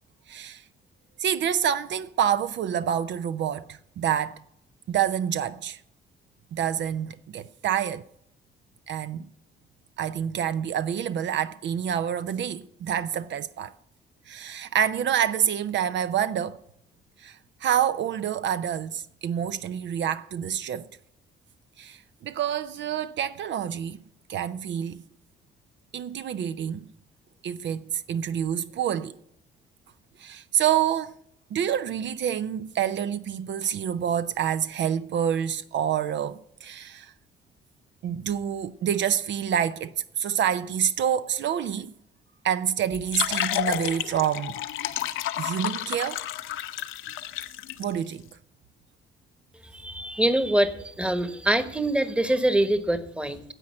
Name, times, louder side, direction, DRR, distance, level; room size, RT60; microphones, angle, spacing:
voice 1, 0.3-0.6 1.2-4.4 4.9-5.8 6.5-8.0 8.9-9.3 10.0-13.7 14.3-16.6 17.2-20.9 21.8-24.0 24.3-25.0 25.9-26.9 27.4-29.2 30.2-31.1 31.5-37.1 38.0-41.9 42.4-44.6 45.4-46.2 47.8-48.2, right 9 dB, 65° right, 0.6 m, -27 dB
sound 1, 42.9-47.8, left 12 dB, 90° left, 0.7 m, -31 dB
voice 2, 49.6-53.4, right 1 dB, 5° right, 1.1 m, -24 dB
10.0 x 7.7 x 8.6 m
cardioid pair, 90°, 20 cm